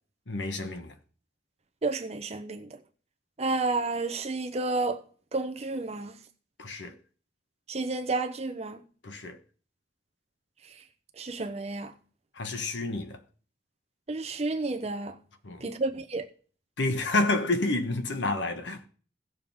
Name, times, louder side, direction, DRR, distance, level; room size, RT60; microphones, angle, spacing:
voice 1, 0.3-0.9 6.6-7.0 9.0-9.4 12.4-13.2 15.4-15.7 16.8-18.9, left 2 dB, 85° left, 1.3 m, -29 dB
voice 2, 1.8-2.7 3.4-5.0 5.3-6.1 7.7-8.8 11.2-11.9 14.1-15.2 15.6-16.3, right 3 dB, 35° right, 0.7 m, -31 dB
16.5 x 6.7 x 3.5 m
head